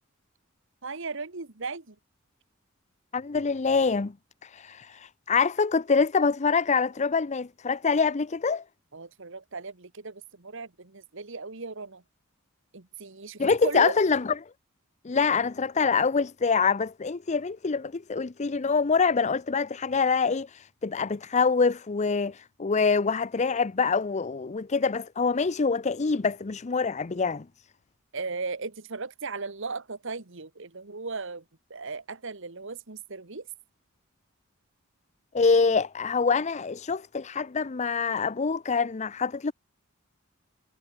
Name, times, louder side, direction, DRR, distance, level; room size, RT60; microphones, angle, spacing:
voice 1, 0.8-1.9 8.9-12.0 12.7-14.0 28.1-31.4 31.7-33.5, right 4 dB, 65° right, 1.6 m, -36 dB
voice 2, 3.1-4.1 4.4-8.6 13.4-14.3 15.0-27.4 35.3-39.5, left 5 dB, 35° left, 0.5 m, -25 dB
head